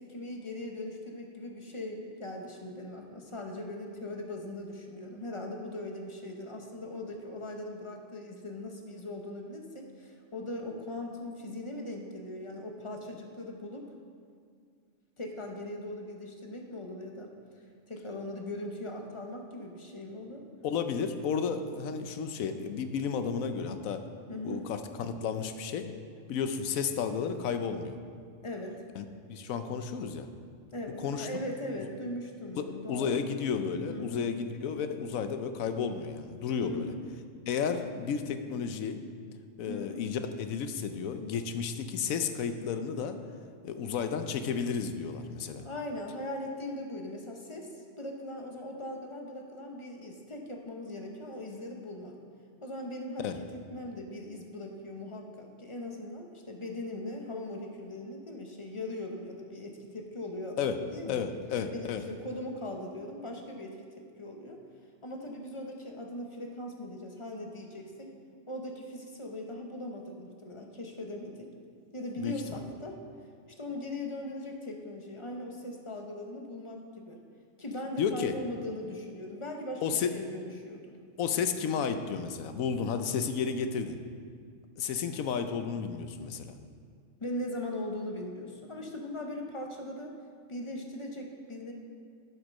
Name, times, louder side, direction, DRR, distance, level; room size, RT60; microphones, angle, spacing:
voice 1, 0.0-13.9 15.2-17.3 17.9-20.4 24.3-24.7 28.4-28.8 30.7-33.4 33.9-34.3 36.6-37.0 39.7-40.1 45.6-52.1 52.6-61.2 61.7-63.8 64.2-64.6 65.0-68.1 68.5-71.5 71.9-73.0 73.6-77.2 77.6-80.9 87.2-90.1 90.5-91.7, left 1 dB, 25° left, 2 dB, 0.8 m, -40 dB
voice 2, 20.6-24.0 24.4-25.9 26.3-28.0 29.0-30.3 31.0-31.3 32.6-36.9 37.5-39.0 39.6-43.2 43.6-45.6 53.2-53.3 60.6-60.8 61.1-62.0 72.2-72.6 78.0-78.3 79.8-80.1 81.2-84.0 84.8-86.5, left 6 dB, 85° left, 8 dB, 1.1 m, -32 dB
7.9 x 7.9 x 5.4 m, 2.2 s
omnidirectional pair, 1.4 m